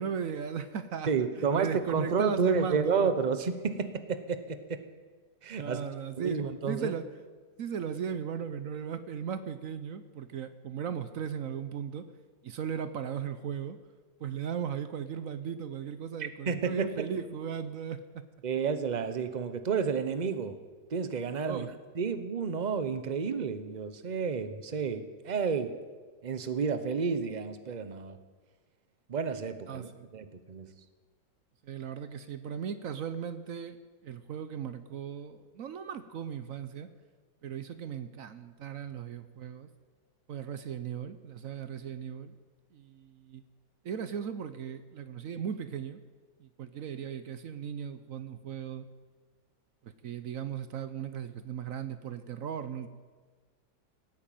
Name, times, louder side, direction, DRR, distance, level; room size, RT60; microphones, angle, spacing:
voice 1, 0.0-3.1 5.6-7.0 7.6-12.1 12.4-13.8 14.2-18.0 21.5-21.7 29.7-30.1 31.6-33.8 34.0-36.9 37.4-39.7 40.3-42.3 42.7-43.4 43.8-46.0 46.4-48.9 49.8-52.9, right 7 dB, 60° right, 12 dB, 1.0 m, -37 dB
voice 2, 1.1-4.8 5.4-5.8 6.2-6.9 16.5-16.9 18.4-20.6 20.9-21.7 22.0-25.7 26.2-28.2 29.1-30.7, right 5 dB, 35° right, 11 dB, 0.8 m, -30 dB
17.5 x 8.9 x 9.0 m, 1.4 s
omnidirectional pair, 1.8 m